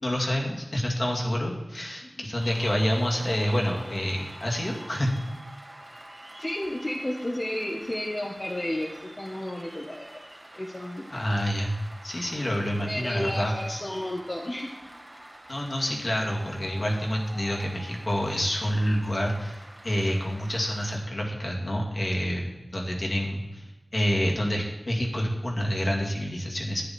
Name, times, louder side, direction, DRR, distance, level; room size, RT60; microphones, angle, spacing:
voice 1, 0.0-5.1 11.1-11.7 12.0-13.5 15.5-23.6 23.9-26.8, equal, 60° left, -1 dB, 2.4 m, -28 dB
Cheering / Applause, 2.4-21.0, right 1 dB, 30° right, 2.9 m, -47 dB
voice 2, 6.4-8.9 9.2-10.2 10.5-11.1 12.8-14.8, left 1 dB, 40° left, -1 dB, 1.3 m, -32 dB
11.5 x 9.7 x 4.3 m, 1.1 s
wide cardioid pair, 50°, 0 cm